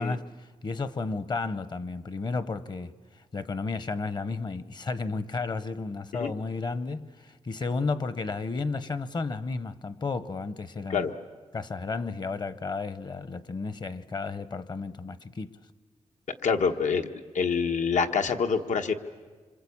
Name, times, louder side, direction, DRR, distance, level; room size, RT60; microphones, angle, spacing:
voice 1, 0.0-11.1 11.5-15.5, left 4 dB, 35° left, 0.8 m, -33 dB
voice 2, 16.4-17.1 17.3-18.9, left 5 dB, 85° left, 1.4 m, -26 dB
26.5 x 26.5 x 8.6 m
wide cardioid pair, 175°, 12 cm